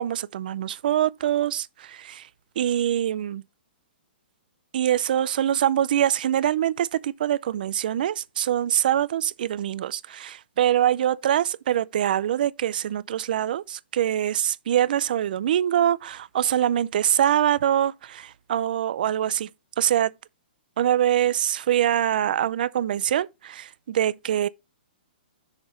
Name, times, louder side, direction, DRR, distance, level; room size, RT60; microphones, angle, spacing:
voice 1, 0.0-2.3 2.6-3.4 4.7-19.5 19.8-20.1 20.8-24.5, right 11 dB, 55° right, 0.5 m, -24 dB
6.6 x 4.7 x 5.1 m
hypercardioid pair, 155°, 6 cm